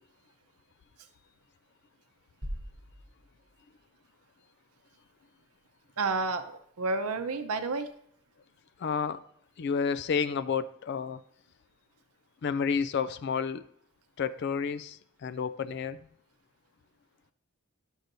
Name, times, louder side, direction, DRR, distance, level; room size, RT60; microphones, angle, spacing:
sound 1, 2.4-4.2, equal, 55° right, 1.2 m, -42 dB
voice 1, 6.0-7.9, right 3 dB, 85° right, 8 dB, 0.7 m, -30 dB
voice 2, 8.8-9.2 9.6-11.2 12.4-13.6 14.2-16.0, left 6 dB, 50° left, 15 dB, 0.3 m, -30 dB
11.5 x 6.3 x 2.6 m, 0.66 s
head